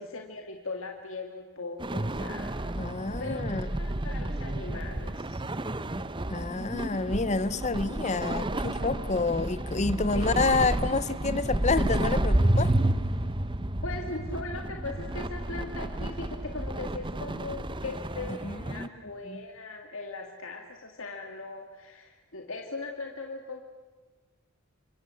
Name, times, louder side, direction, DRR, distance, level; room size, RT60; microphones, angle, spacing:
voice 1, 0.0-2.5 3.2-3.4 3.8-5.4 10.1-10.4 13.8-23.6, left 3 dB, 70° left, 2.2 m, -39 dB
sound 1, 1.8-18.9, right 1 dB, 25° right, 0.9 m, -30 dB
voice 2, 2.8-3.7 6.3-12.7 18.4-18.9 19.2-19.4, left 3 dB, 35° left, 0.8 m, -28 dB
28.5 x 25.0 x 7.7 m
head